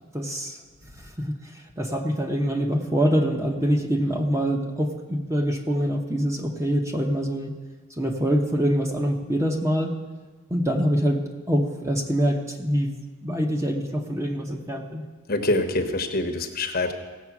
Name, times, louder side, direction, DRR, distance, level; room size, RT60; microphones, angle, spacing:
voice 1, 0.1-0.6 1.0-7.5 8.0-9.9 10.5-11.2 11.5-15.0, equal, 15° right, 3 dB, 0.9 m, -25 dB
voice 2, 15.3-16.9, left 2 dB, 45° left, 7 dB, 1.0 m, -25 dB
15.5 x 7.9 x 6.0 m, 1.3 s
head